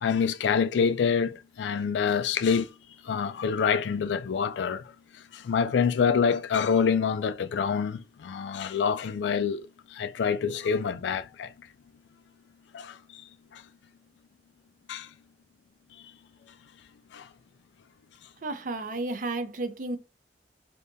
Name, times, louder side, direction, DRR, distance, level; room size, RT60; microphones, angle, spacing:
voice 1, 0.0-2.7 3.0-11.5 12.7-13.6 14.9-15.1 17.1-17.3, left 6 dB, 85° left, 0.3 m, -27 dB
voice 2, 18.4-20.0, right 2 dB, 50° right, 0.5 m, -32 dB
3.4 x 2.7 x 2.6 m
head